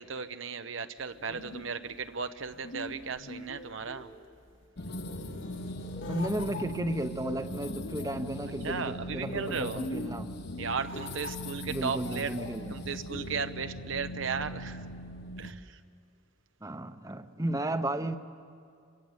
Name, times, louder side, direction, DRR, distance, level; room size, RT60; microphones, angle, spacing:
voice 1, 0.0-4.1 8.6-9.8 10.6-12.4 12.7-14.8 15.4-15.8, right 5 dB, 75° right, 9 dB, 0.9 m, -35 dB
sound 1, 1.0-13.5, left 1 dB, 70° left, 2.6 m, -44 dB
sound 2, 4.8-15.5, left 1 dB, 55° left, 1.4 m, -40 dB
voice 2, 6.1-10.3 11.6-12.8 16.6-18.2, right 1 dB, 15° right, 10 dB, 0.9 m, -34 dB
28.0 x 24.0 x 8.1 m, 2.3 s
head